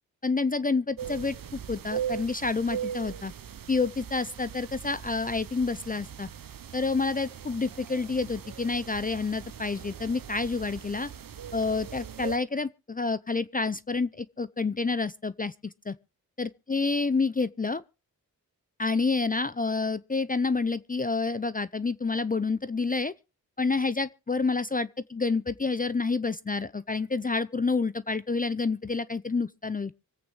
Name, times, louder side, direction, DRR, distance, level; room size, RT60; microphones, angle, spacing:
voice 1, 0.2-3.3 3.7-6.3 6.7-11.1 11.5-16.0 16.4-17.8 18.8-23.1 23.6-29.9, left 4 dB, 25° left, 0.6 m, -28 dB
sound 1, 1.0-12.4, right 9 dB, 60° right, 1.0 m, -40 dB
25.5 x 8.6 x 3.3 m
cardioid pair, 50°, 38 cm